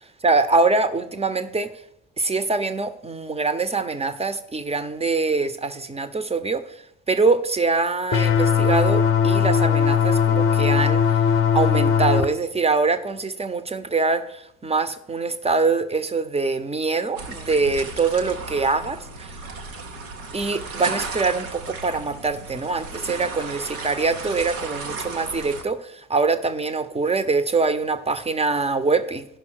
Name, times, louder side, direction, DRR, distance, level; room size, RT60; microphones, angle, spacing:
voice 1, 0.2-1.7 2.2-6.6 7.1-11.2 11.5-19.3 20.3-29.3, right 4 dB, 15° right, 0.7 m, -24 dB
sound 1, 8.1-12.2, left 7 dB, 30° left, 0.7 m, -19 dB
sound 2, 17.2-25.6, right 3 dB, 90° right, 0.9 m, -35 dB
12.5 x 5.7 x 4.6 m
figure-of-eight pair, 50°, 41 cm